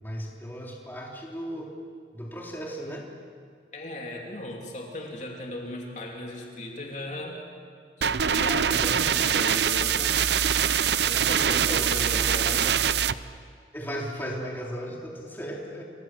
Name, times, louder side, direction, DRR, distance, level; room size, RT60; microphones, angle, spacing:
voice 1, 0.0-1.7 2.1-3.1 11.2-11.9 13.7-15.8, equal, 10° left, -2 dB, 3.6 m, -36 dB
voice 2, 3.7-7.4 8.0-10.2 11.0-12.8, left 1 dB, 40° left, 0 dB, 3.1 m, -37 dB
sound 1, 8.0-13.1, right 8 dB, 65° right, 0.6 m, -23 dB
29.0 x 25.5 x 7.6 m, 2.1 s
head